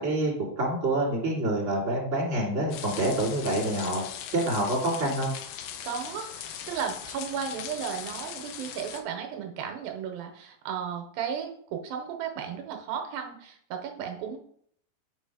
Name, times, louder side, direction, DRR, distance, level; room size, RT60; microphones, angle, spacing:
voice 1, 0.0-4.0 4.3-5.3, right 1 dB, 20° right, -4 dB, 2.6 m, -27 dB
sound 1, 2.7-9.0, left 9 dB, 90° left, 2.5 m, -40 dB
voice 2, 5.8-14.4, right 7 dB, 80° right, 4 dB, 2.6 m, -34 dB
7.5 x 4.6 x 4.8 m, 0.65 s
omnidirectional pair, 4.1 m